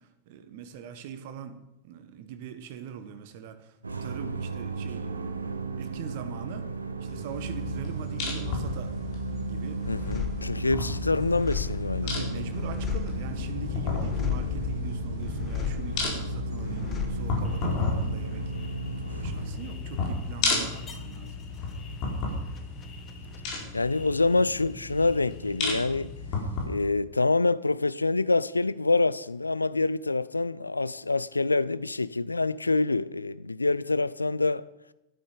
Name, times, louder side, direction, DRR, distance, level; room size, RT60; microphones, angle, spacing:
voice 1, 0.3-1.6 1.8-3.8 4.0-6.7 7.0-8.9 9.4-9.8 10.3-11.1 12.0-18.5 19.1-21.4, right 7 dB, 50° right, 1.5 m, -42 dB
sound 1, 3.8-19.6, right 5 dB, 75° right, 1.1 m, -36 dB
sound 2, 7.1-26.7, left 4 dB, 40° left, 4.3 m, -33 dB
sound 3, 9.8-24.7 25.0-25.8, left 7 dB, 25° left, 1.5 m, -37 dB
voice 2, 9.9-12.4 23.7-26.1 26.7-34.7, left 3 dB, 80° left, 0.4 m, -26 dB
12.5 x 12.0 x 5.1 m
figure-of-eight pair, 90°, 0 cm